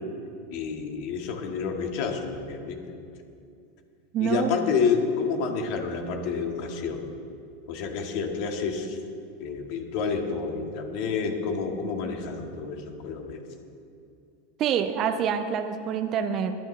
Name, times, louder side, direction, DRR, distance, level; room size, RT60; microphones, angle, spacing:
voice 1, 0.5-3.0 4.2-7.1 7.7-9.0 9.4-13.4, left 5 dB, 60° left, 3 dB, 1.8 m, -29 dB
voice 2, 4.1-4.5 14.6-16.6, right 8 dB, 45° right, 7 dB, 0.8 m, -26 dB
21.5 x 9.0 x 3.3 m, 2.5 s
hypercardioid pair, 100°, 0 cm